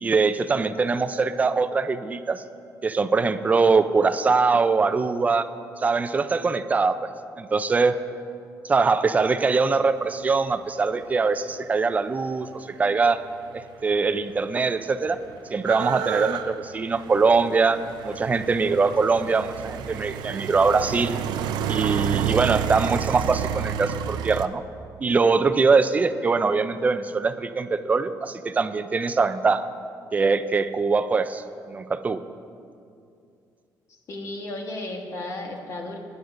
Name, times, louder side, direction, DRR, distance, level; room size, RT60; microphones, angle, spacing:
voice 1, 0.0-2.4 2.8-5.5 5.8-7.1 7.4-8.0 8.6-13.2 13.5-15.2 15.5-17.8 18.0-21.2 21.7-24.6 25.0-29.7 30.1-32.2, right 4 dB, 20° right, 10 dB, 0.4 m, -22 dB
sound 1, 13.8-13.9 14.1-24.5, right 10 dB, 85° right, 0.4 m, -30 dB
voice 2, 34.1-36.0, left 2 dB, 45° left, 2 dB, 1.2 m, -34 dB
20.0 x 9.5 x 2.6 m, 2.4 s
cardioid pair, 145°, 7 cm